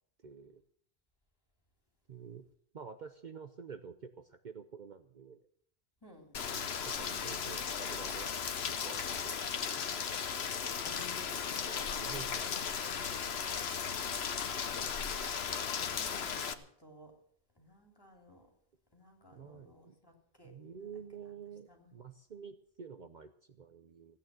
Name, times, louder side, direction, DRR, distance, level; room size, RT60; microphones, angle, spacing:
voice 1, 0.2-0.6 2.1-2.4 2.7-5.4 6.5-8.3 8.8-9.8 10.9-11.4 11.7-13.3 19.3-20.0 20.4-24.2, right 6 dB, 50° right, 9 dB, 0.8 m, -49 dB
voice 2, 6.0-6.4 10.8-11.9 15.8-17.1 17.6-18.5 18.9-20.9 21.7-22.0, left 2 dB, 20° left, 2 dB, 3.1 m, -56 dB
Rain, 6.3-16.5, left 7 dB, 80° left, 1.2 m, -36 dB
16.0 x 8.9 x 7.5 m, 0.66 s
omnidirectional pair, 1.1 m